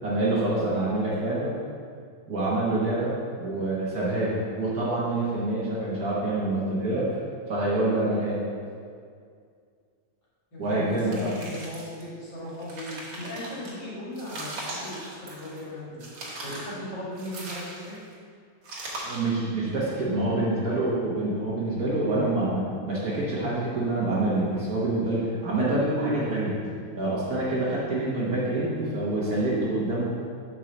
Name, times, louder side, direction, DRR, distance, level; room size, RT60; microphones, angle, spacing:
voice 1, 0.0-1.5 2.3-7.1 7.5-8.4 10.6-11.3 19.0-26.6 26.9-30.0, right 2 dB, 50° right, -7 dB, 1.6 m, -26 dB
voice 2, 10.5-17.9, left 1 dB, 60° left, -8 dB, 2.6 m, -38 dB
sound 1, 10.9-12.0 12.5-13.7 14.2-15.6 16.0-16.7 17.2-18.1 18.6-19.3, right 1 dB, 80° right, 2.3 m, -39 dB
5.5 x 4.6 x 6.2 m, 2.2 s
omnidirectional pair, 2.3 m